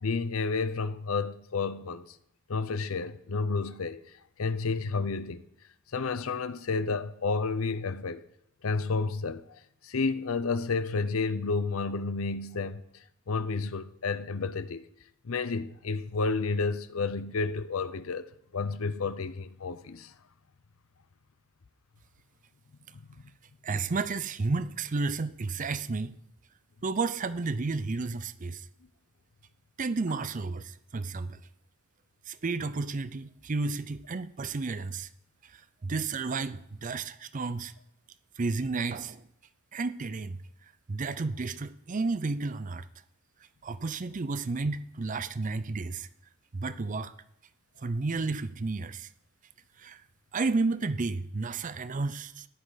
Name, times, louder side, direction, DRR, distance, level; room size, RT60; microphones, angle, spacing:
voice 1, 0.0-2.2 2.5-4.0 4.4-5.4 5.9-8.2 8.6-14.9 15.2-20.1 22.9-23.0, left 4 dB, 90° left, 0.7 m, -31 dB
voice 2, 23.6-26.2 26.8-28.7 29.8-31.4 32.3-35.1 35.5-37.7 38.4-39.3 39.7-40.4 40.9-42.9 43.6-46.1 46.5-47.1 47.8-49.1 49.8-50.0 50.3-52.5, right 3 dB, 40° right, 0.5 m, -32 dB
14.5 x 11.0 x 4.1 m
head